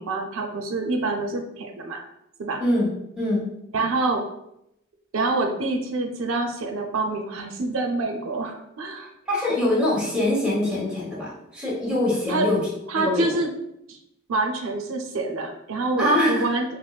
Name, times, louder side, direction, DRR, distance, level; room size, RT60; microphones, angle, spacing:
voice 1, 0.0-2.0 2.4-2.6 3.7-4.2 5.1-9.1 12.3-12.5 12.9-13.5 13.9-14.0 14.3-16.6, right 2 dB, 85° right, 3 dB, 0.5 m, -26 dB
voice 2, 9.3-12.6 12.9-13.3 16.0-16.4, left 1 dB, 5° right, -5 dB, 1.0 m, -23 dB
5.2 x 2.0 x 2.3 m, 0.81 s
head